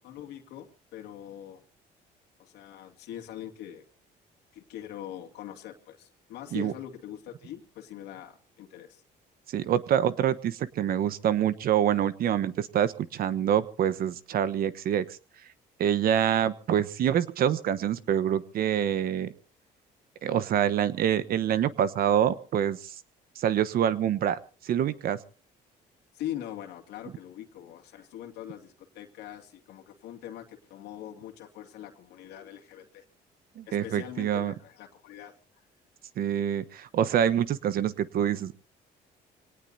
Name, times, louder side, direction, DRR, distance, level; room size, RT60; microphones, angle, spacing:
voice 1, 0.0-1.6 2.4-3.8 4.5-9.0 26.1-33.0 33.7-35.3, left 11 dB, 85° left, 2 dB, 2.5 m, -42 dB
voice 2, 9.5-15.2 15.8-19.3 20.2-22.9 23.4-24.4 24.6-25.2 33.6-34.5 36.2-38.6, right 10 dB, 60° right, 14 dB, 1.2 m, -26 dB
26.0 x 18.5 x 2.8 m, 0.36 s
cardioid pair, 110°, 17 cm